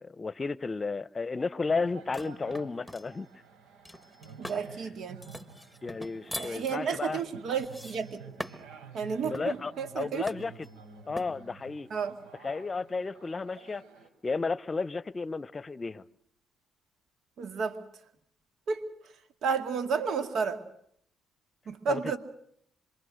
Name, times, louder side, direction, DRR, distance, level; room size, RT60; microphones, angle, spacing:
voice 1, 0.0-3.3 5.8-7.2 9.2-10.5 11.1-11.9 12.4-13.8 14.2-16.0 21.9-22.0, left 4 dB, 30° left, 0.9 m, -33 dB
sound 1, 1.7-14.1, right 5 dB, 90° right, 4.1 m, -51 dB
sound 2, 2.1-3.1 3.8-4.7 5.2-8.8 9.3-9.6 10.3-10.7 11.2-11.4, equal, ahead, 1.7 m, -42 dB
voice 2, 4.4-5.2 6.3-8.2 8.9-10.2 11.9-12.1 17.4-17.8 18.7-19.1 19.4-20.6 21.7-22.2, right 6 dB, 70° right, 2.3 m, -32 dB
26.5 x 23.0 x 6.5 m
cardioid pair, 90°, 0 cm